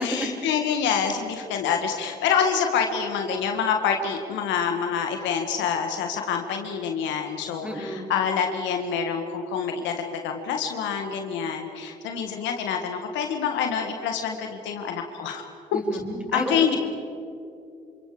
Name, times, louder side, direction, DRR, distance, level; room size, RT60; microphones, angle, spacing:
voice 1, 0.0-15.4 16.3-16.8, left 7 dB, 80° left, 4 dB, 1.7 m, -26 dB
voice 2, 7.6-8.1 15.7-16.8, left 1 dB, 5° right, 0 dB, 6.8 m, -31 dB
28.0 x 27.5 x 5.0 m, 2.5 s
hypercardioid pair, 40°, 19 cm